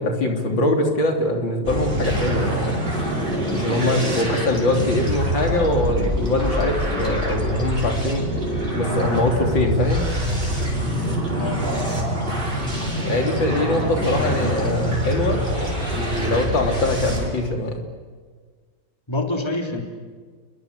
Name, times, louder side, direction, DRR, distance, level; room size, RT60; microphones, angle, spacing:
voice 1, 0.0-2.5 3.5-8.3 8.7-10.0 13.0-15.4 15.9-17.8, left 1 dB, 70° left, 3 dB, 4.0 m, -22 dB
sound 1, 1.6-17.3, equal, 25° right, 5.4 m, -25 dB
voice 2, 3.6-4.2 11.4-11.6 19.1-19.8, left 2 dB, 15° left, 3 dB, 3.3 m, -27 dB
29.5 x 23.0 x 8.2 m, 1.5 s
omnidirectional pair, 2.1 m